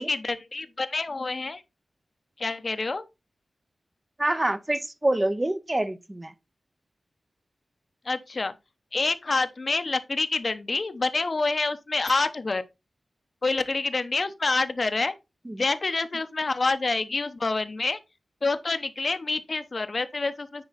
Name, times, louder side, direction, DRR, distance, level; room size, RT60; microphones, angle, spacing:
voice 1, 0.0-1.6 2.4-3.0 8.1-8.5 8.9-12.6 13.4-15.1 15.6-18.0 18.4-20.6, left 3 dB, 45° left, 0.9 m, -27 dB
voice 2, 4.2-6.3 15.5-15.6, right 1 dB, 20° right, 0.8 m, -26 dB
9.9 x 4.6 x 4.1 m
wide cardioid pair, 100°, 0 cm